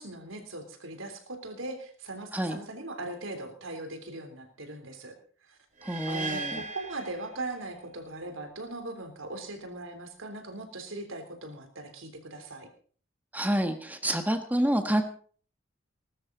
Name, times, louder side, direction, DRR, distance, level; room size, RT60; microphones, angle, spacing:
voice 1, 0.0-5.1 5.4-5.6 6.1-12.7, right 2 dB, 80° right, 6 dB, 3.5 m, -39 dB
voice 2, 5.8-6.6 13.3-15.0, right 1 dB, 10° right, 7 dB, 1.4 m, -28 dB
sound 1, 5.8-8.0, right 3 dB, 40° right, 2.4 m, -38 dB
20.0 x 13.0 x 4.0 m, 0.44 s
head